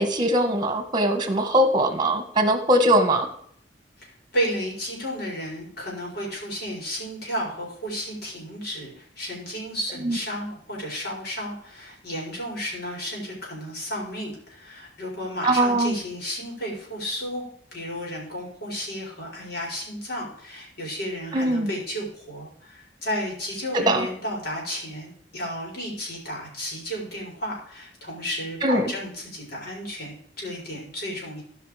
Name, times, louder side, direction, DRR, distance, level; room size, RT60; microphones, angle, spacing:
voice 1, 0.0-3.3 10.0-10.2 15.4-16.0 21.3-21.7 23.7-24.1 28.6-28.9, right 1 dB, 25° right, 7 dB, 1.6 m, -21 dB
voice 2, 4.0-17.4 17.7-31.4, equal, 60° left, -3 dB, 4.9 m, -33 dB
16.0 x 5.7 x 5.0 m, 0.64 s
head